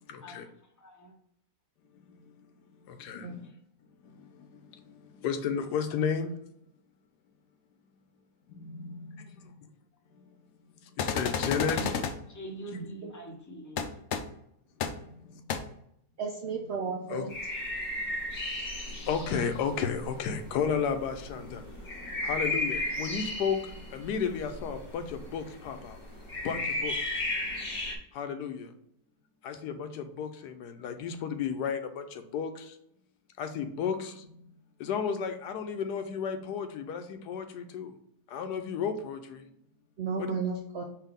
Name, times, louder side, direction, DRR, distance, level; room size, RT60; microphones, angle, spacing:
voice 1, 0.1-0.5 2.9-3.5 5.2-6.3 8.6-9.2 11.0-11.8 15.0-15.1 17.1-17.3 18.9-21.6 22.2-23.6 23.9-26.0 26.4-26.9 28.1-28.7 29.4-32.6 33.4-34.2 34.8-37.9 38.3-39.4 40.2-40.3, left 6 dB, 85° left, 7 dB, 1.2 m, -33 dB
voice 2, 0.8-1.1 3.4-3.6 11.7-12.0 12.3-13.9, right 1 dB, 20° left, 0 dB, 0.6 m, -42 dB
sound 1, 11.0-12.1 13.8-13.9 14.1-14.2 14.8-14.9 15.5-15.6, left 6 dB, 70° left, 0.7 m, -30 dB
voice 3, 16.2-17.3 40.0-40.8, right 5 dB, 65° right, 1 dB, 0.6 m, -33 dB
sound 2, 17.3-28.0, left 1 dB, 40° left, 0.9 m, -35 dB
4.7 x 3.2 x 3.5 m, 0.74 s
omnidirectional pair, 1.7 m